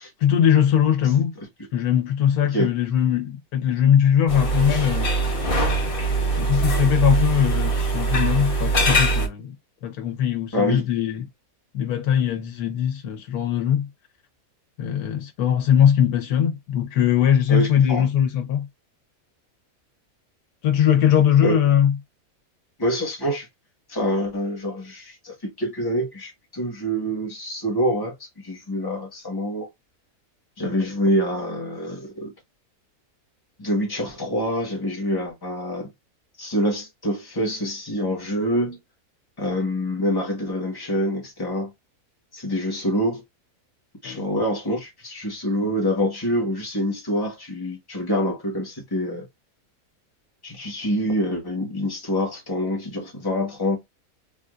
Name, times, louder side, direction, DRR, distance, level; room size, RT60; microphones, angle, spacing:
voice 1, 0.2-1.3 1.7-5.1 6.4-9.5 9.8-11.2 11.7-13.9 14.8-18.7 20.6-21.9 44.0-44.2, left 9 dB, 90° left, 1.4 m, -20 dB
Ambient sound inside cafe kitchen, 4.3-9.3, right 2 dB, 45° left, 1.0 m, -22 dB
voice 2, 10.5-10.8 17.5-18.1 21.4-21.6 22.8-23.5 23.9-29.7 30.6-32.3 33.6-35.9 36.4-38.8 39.4-41.7 42.3-43.2 44.0-49.3 50.4-53.8, equal, 15° left, 1.2 m, -26 dB
3.4 x 2.5 x 2.4 m
omnidirectional pair, 1.5 m